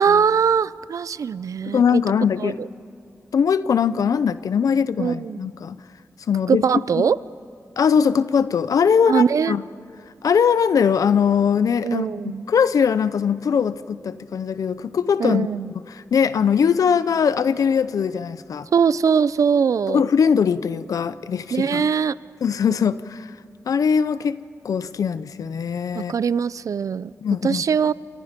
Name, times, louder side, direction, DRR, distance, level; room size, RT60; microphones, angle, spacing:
voice 1, 0.0-2.0 2.4-2.7 5.0-5.4 6.5-7.2 9.1-9.6 11.8-12.5 15.2-15.7 18.7-20.0 21.5-22.2 25.9-27.1 27.4-27.9, right 6 dB, 70° right, 18 dB, 0.5 m, -21 dB
voice 2, 1.6-2.6 3.3-5.8 6.3-6.6 7.0-7.1 7.8-9.6 10.2-15.5 15.9-18.7 19.9-21.9 22.4-23.3 23.7-24.4 24.6-26.1 27.2-27.6, left 7 dB, 85° left, 14 dB, 0.7 m, -21 dB
28.5 x 27.0 x 5.2 m, 2.4 s
wide cardioid pair, 85°, 6 cm